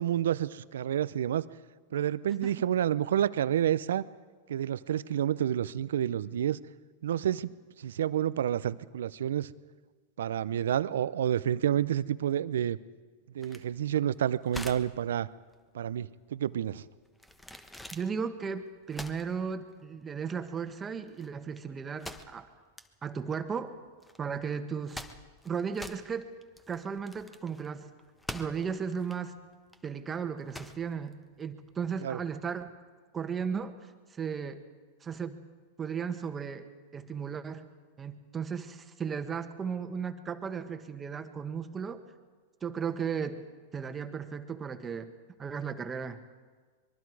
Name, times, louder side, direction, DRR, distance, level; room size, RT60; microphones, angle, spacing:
voice 1, 0.0-1.5 1.9-4.0 4.5-6.6 7.0-9.5 10.2-12.8 13.3-15.3 15.7-16.8 32.0-32.2, right 10 dB, 75° right, 17 dB, 0.6 m, -29 dB
sound 1, 13.4-31.9, left 1 dB, 5° left, 1.3 m, -47 dB
voice 2, 17.9-22.5 23.0-23.8 24.2-25.0 25.5-26.3 26.7-27.9 28.3-29.4 29.8-32.7 33.1-33.7 34.1-34.6 35.0-35.4 35.8-36.7 36.9-37.7 38.0-42.0 42.6-43.4 43.7-45.1 45.4-46.2, right 6 dB, 20° right, 8 dB, 1.6 m, -35 dB
24.0 x 22.5 x 4.8 m, 1.4 s
hypercardioid pair, 105°, 0 cm